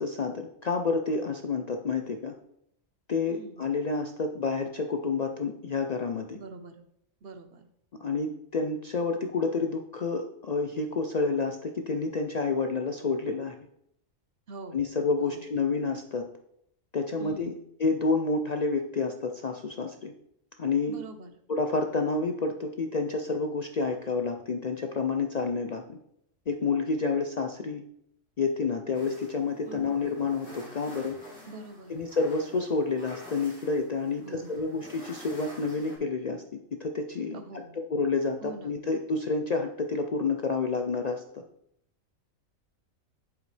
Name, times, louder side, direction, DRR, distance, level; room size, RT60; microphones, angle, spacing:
voice 1, 0.0-2.3 3.1-6.4 8.0-13.5 14.7-16.2 16.9-17.5 17.8-20.1 20.6-21.0 21.5-26.0 26.5-27.8 28.4-31.2 31.9-36.4 36.8-41.4, left 4 dB, 70° left, 4 dB, 0.3 m, -29 dB
voice 2, 3.3-3.6 6.3-6.8 7.2-7.7 14.5-14.8 15.2-15.5 17.2-17.7 20.9-21.3 29.6-29.9 31.5-32.0 34.2-34.7 37.3-37.9 38.4-38.8, right 3 dB, 50° right, 7 dB, 0.9 m, -44 dB
sound 1, 28.9-36.0, equal, 5° left, 3.0 m, -49 dB
8.0 x 7.2 x 3.3 m, 0.74 s
omnidirectional pair, 1.4 m